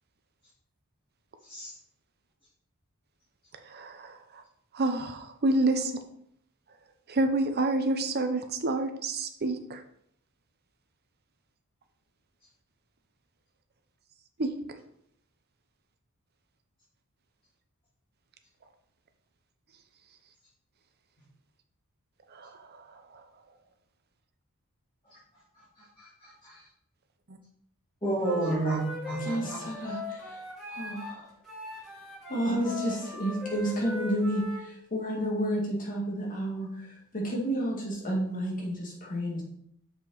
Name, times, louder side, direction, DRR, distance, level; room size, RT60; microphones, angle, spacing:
voice 1, 3.7-4.4 4.7-6.0 7.1-9.8 14.4-14.5 22.3-22.5 27.3-27.4, right 2 dB, 45° right, 7 dB, 0.8 m, -28 dB
voice 2, 26.0-26.6 28.0-28.8 29.1-29.6, right 1 dB, 25° left, -9 dB, 2.0 m, -30 dB
Wind instrument woodwind instrument, 28.2-31.2 31.4-34.6, equal, ahead, 2.5 m, -39 dB
voice 3, 29.2-30.4 30.7-31.3 32.3-39.4, equal, 40° left, -3 dB, 2.2 m, -31 dB
6.7 x 5.3 x 4.1 m, 0.71 s
head